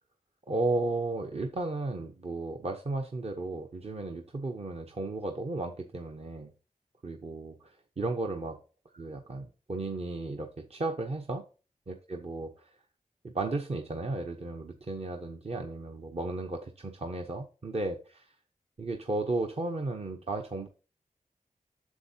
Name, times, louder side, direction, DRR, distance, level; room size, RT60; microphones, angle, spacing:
voice 1, 0.5-6.5 7.0-8.6 9.0-11.4 11.9-12.8 13.2-18.2 18.8-20.7, right 2 dB, 45° right, 3 dB, 0.9 m, -34 dB
8.1 x 7.3 x 2.8 m, 0.34 s
wide cardioid pair, 60°, 14 cm